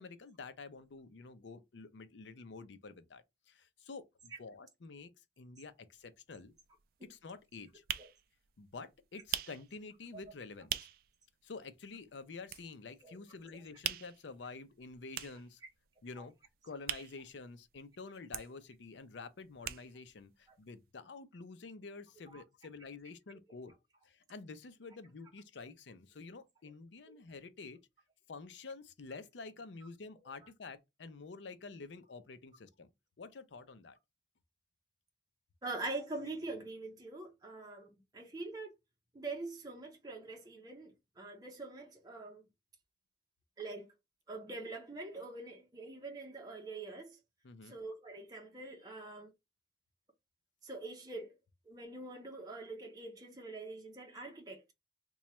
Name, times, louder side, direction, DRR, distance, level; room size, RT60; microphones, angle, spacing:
voice 1, 0.0-5.1 5.4-6.5 7.0-7.8 8.6-10.9 11.4-15.6 16.0-16.3 16.6-23.7 24.0-27.8 28.3-32.9 33.2-34.0 47.4-47.8, left 4 dB, 80° left, 0.5 m, -49 dB
sound 1, 6.0-6.1 6.4-11.2 11.5-11.6 11.9-13.1 13.4-17.9 18.1-20.2 20.5-20.6 20.8-20.9, right 12 dB, 55° right, 0.3 m, -42 dB
voice 2, 35.6-38.7 39.1-42.4 43.6-43.9 44.3-47.2 47.6-49.3 50.6-51.3 51.7-54.7, right 2 dB, 20° right, 0.7 m, -44 dB
3.0 x 2.3 x 4.2 m
head